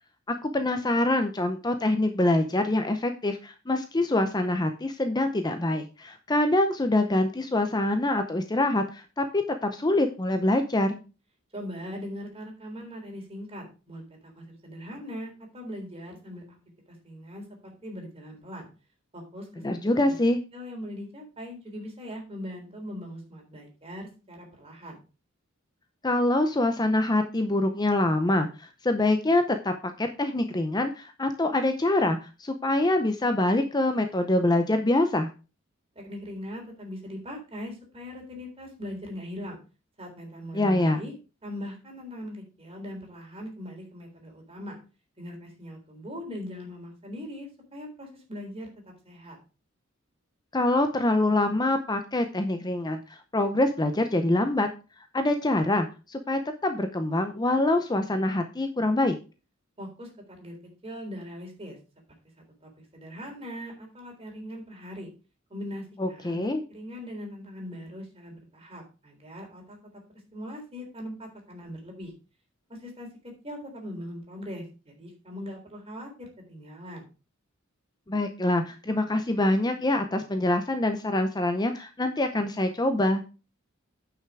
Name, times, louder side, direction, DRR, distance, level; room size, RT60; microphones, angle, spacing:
voice 1, 0.3-11.0 19.6-20.4 26.0-35.3 40.5-41.0 50.5-54.7 55.1-59.2 66.0-66.6 78.1-83.2, left 1 dB, 20° left, 7 dB, 0.7 m, -25 dB
voice 2, 11.5-16.6 16.9-18.7 19.1-20.1 20.5-25.0 36.0-39.6 40.0-41.1 41.4-44.8 45.2-49.4 59.8-60.6 60.8-61.8 62.6-65.1 65.5-69.8 70.3-72.1 72.7-77.1, equal, 30° right, 1 dB, 3.6 m, -40 dB
9.4 x 5.8 x 4.7 m, 0.32 s
head